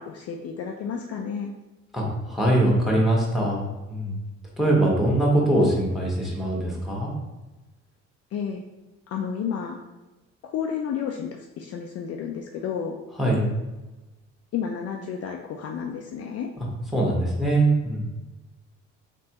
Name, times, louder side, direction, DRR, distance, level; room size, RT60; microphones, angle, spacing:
voice 1, 0.0-1.5 8.3-8.6 9.1-9.8 10.4-13.0 14.5-16.5, left 7 dB, 50° left, 2 dB, 0.4 m, -31 dB
voice 2, 1.9-4.2 4.6-7.1 13.2-13.5 16.6-16.7 16.9-18.0, right 1 dB, ahead, -3 dB, 1.4 m, -22 dB
3.3 x 3.3 x 2.9 m, 1.1 s
supercardioid pair, 65°, 32 cm